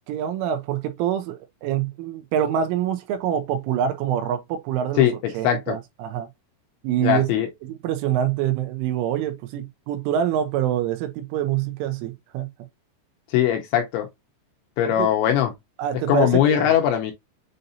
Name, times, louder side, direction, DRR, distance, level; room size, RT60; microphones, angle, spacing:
voice 1, 0.1-5.1 5.3-6.3 6.8-7.3 7.6-12.5 15.0-15.1 15.8-16.7, right 10 dB, 85° right, 3.1 m, -25 dB
voice 2, 5.0-5.8 7.0-7.5 13.3-14.1 14.8-15.5 16.1-17.1, left 11 dB, 80° left, 2.8 m, -20 dB
7.8 x 2.6 x 2.6 m
omnidirectional pair, 5.9 m